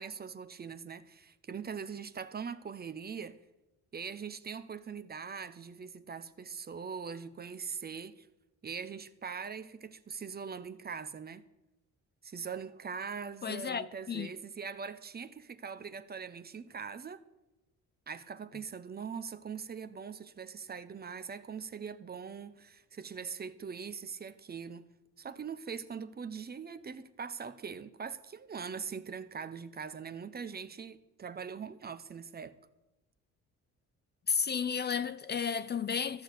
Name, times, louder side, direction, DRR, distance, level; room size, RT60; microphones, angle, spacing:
voice 1, 0.0-3.4 3.9-8.3 8.6-11.4 12.2-17.2 18.1-24.9 25.2-32.6, right 6 dB, 30° right, 0.7 m, -42 dB
voice 2, 13.4-14.3 34.3-36.2, left 6 dB, 35° left, 0.5 m, -33 dB
14.0 x 6.5 x 7.9 m
cardioid pair, 90°, 30 cm